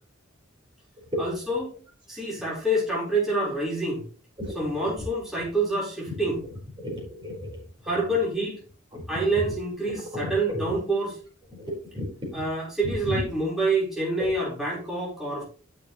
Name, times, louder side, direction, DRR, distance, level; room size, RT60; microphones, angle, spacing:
voice 1, 1.2-1.7 2.1-4.0 4.5-6.4 7.8-8.6 9.1-11.1 12.3-15.4, right 2 dB, ahead, -6 dB, 4.4 m, -27 dB
voice 2, 4.4-4.9 6.1-6.2 6.8-7.6 8.9-9.2 10.1-10.7 11.5-12.1 12.3-12.4 12.8-13.2 14.2-14.3, left 1 dB, 25° right, -3 dB, 4.5 m, -33 dB
12.5 x 6.2 x 3.1 m, 0.39 s
head